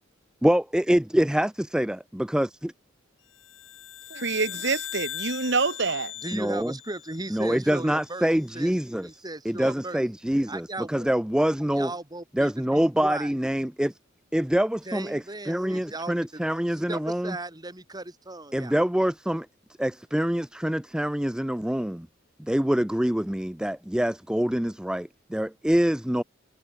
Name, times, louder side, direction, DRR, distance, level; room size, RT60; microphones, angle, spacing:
voice 1, 0.4-2.7 6.3-6.7 7.3-9.1 9.5-11.9 12.4-13.9 14.3-17.4 18.5-19.5 19.8-22.1 22.4-26.2, equal, 5° right, 0.4 m, -25 dB
sound 1, 3.4-7.9, left 12 dB, 70° left, 5.9 m, -39 dB
voice 2, 4.1-6.1, right 4 dB, 60° right, 2.1 m, -26 dB
voice 3, 6.2-8.3 8.5-8.7 9.0-10.0 10.5-11.1 11.7-13.3 14.9-16.4 16.9-18.7, right 2 dB, 20° right, 2.2 m, -37 dB
head